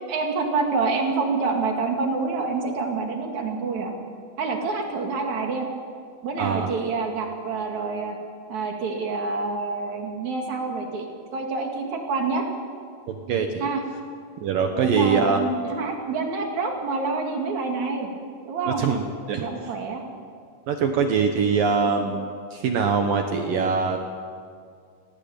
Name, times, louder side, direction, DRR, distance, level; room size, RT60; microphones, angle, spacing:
voice 1, 0.1-3.9 4.4-5.7 6.2-8.1 8.5-11.1 11.3-12.4 13.6-13.8 14.8-18.1 18.4-18.8 19.3-20.0, right 4 dB, 45° right, 2 dB, 2.9 m, -27 dB
voice 2, 6.4-6.7 13.1-13.7 14.4-15.4 18.8-19.5 20.7-24.0, right 5 dB, 70° right, 4 dB, 2.1 m, -23 dB
19.5 x 18.0 x 8.8 m, 2.2 s
omnidirectional pair, 5.6 m